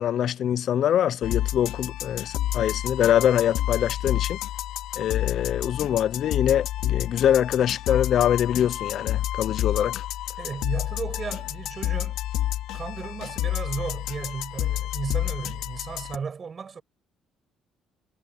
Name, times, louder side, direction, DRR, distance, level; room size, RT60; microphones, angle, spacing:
voice 1, 0.0-4.4 5.0-10.0, left 10 dB, 55° left, 0.4 m, -24 dB
sound 1, 1.2-16.2, left 13 dB, 85° left, 2.3 m, -29 dB
voice 2, 10.4-12.2 12.7-16.8, right 6 dB, 30° right, 7.5 m, -34 dB
cardioid pair, 135°, 0 cm